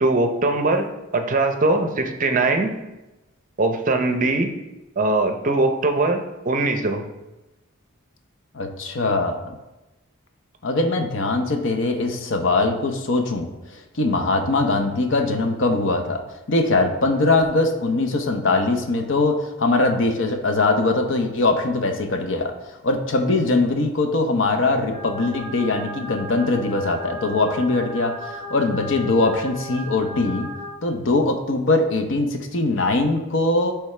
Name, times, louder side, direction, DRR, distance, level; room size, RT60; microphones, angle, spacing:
voice 1, 0.0-0.8 1.1-2.7 3.6-4.5 5.0-6.2 6.5-7.0, right 2 dB, 40° right, 6 dB, 0.6 m, -21 dB
voice 2, 8.5-9.5 10.6-16.2 16.5-22.5 22.8-30.5 30.8-33.7, left 2 dB, 60° left, 5 dB, 0.7 m, -21 dB
sound 1, 24.9-30.7, equal, 35° left, 1.5 m, -36 dB
10.0 x 3.5 x 3.3 m, 1.0 s
head